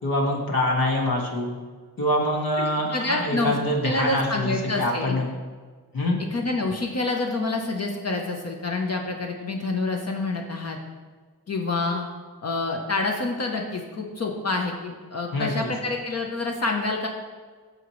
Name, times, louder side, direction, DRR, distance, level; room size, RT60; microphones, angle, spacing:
voice 1, 0.0-1.6 2.0-5.3 5.9-6.2 15.3-15.7, left 1 dB, 65° left, -1 dB, 2.0 m, -25 dB
voice 2, 2.6-5.2 6.3-10.8 11.5-12.1 12.4-17.1, left 3 dB, 45° left, 1 dB, 1.0 m, -27 dB
14.5 x 5.2 x 3.2 m, 1.5 s
wide cardioid pair, 120°, 37 cm